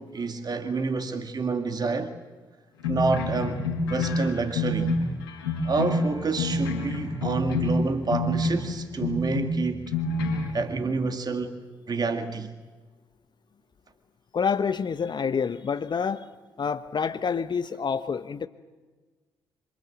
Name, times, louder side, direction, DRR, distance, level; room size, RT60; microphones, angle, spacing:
voice 1, 0.0-2.2 2.9-4.9 5.6-9.9 10.5-11.6 11.9-12.5, right 4 dB, 35° right, 2.1 m, -28 dB
sound 1, 2.8-8.7 9.0-10.5, left 2 dB, 85° left, 4.8 m, -28 dB
voice 2, 14.3-16.2 16.6-18.5, left 6 dB, 40° left, 1.2 m, -27 dB
27.5 x 26.5 x 7.9 m
figure-of-eight pair, 45°, 11 cm